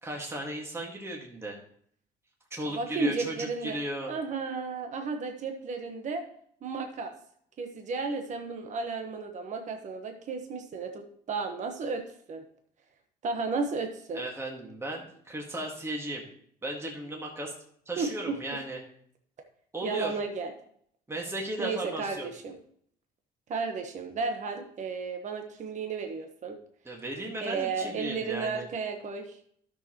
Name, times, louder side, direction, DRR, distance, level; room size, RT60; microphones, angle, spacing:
voice 1, 0.0-1.6 2.5-4.1 14.1-16.2 16.6-17.5 17.8-18.8 19.7-20.2 21.1-22.3 26.8-28.7, right 1 dB, 15° right, -1 dB, 1.8 m, -36 dB
voice 2, 2.7-3.8 4.1-6.2 6.6-7.1 7.6-12.0 12.3-12.4 13.2-14.2 18.0-18.4 19.8-20.5 21.6-22.5 23.5-26.5 27.4-29.4, right 4 dB, 45° right, 5 dB, 1.2 m, -33 dB
12.5 x 6.5 x 3.0 m, 0.63 s
cardioid pair, 110°, 17 cm